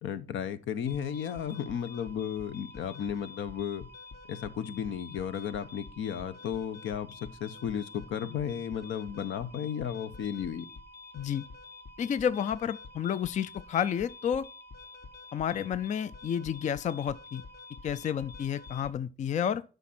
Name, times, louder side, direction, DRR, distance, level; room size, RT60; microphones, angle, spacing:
voice 1, 0.0-3.9 4.3-10.7, left 8 dB, 75° left, 0.8 m, -34 dB
sound 1, 0.9-18.9, left 3 dB, 55° left, 1.3 m, -48 dB
voice 2, 11.1-11.4 12.0-14.5 15.3-17.4 17.8-19.6, left 8 dB, 40° left, 0.4 m, -30 dB
8.1 x 5.3 x 5.8 m
cardioid pair, 90°, 20 cm